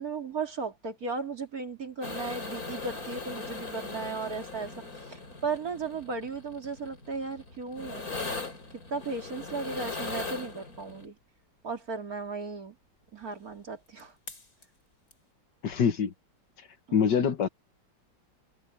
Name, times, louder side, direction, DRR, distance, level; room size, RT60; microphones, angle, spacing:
voice 1, 0.0-4.7 5.1-8.1 8.9-11.1 11.6-12.7 13.1-14.1 16.9-17.0, right 4 dB, 50° right, 3.3 m, -35 dB
sound 1, 2.0-11.1 14.0-14.1 14.3-14.6 15.1-15.2, left 3 dB, 50° left, 4.6 m, -39 dB
voice 2, 15.6-16.1 16.9-17.5, left 7 dB, 65° left, 1.8 m, -24 dB
open air
omnidirectional pair, 2.1 m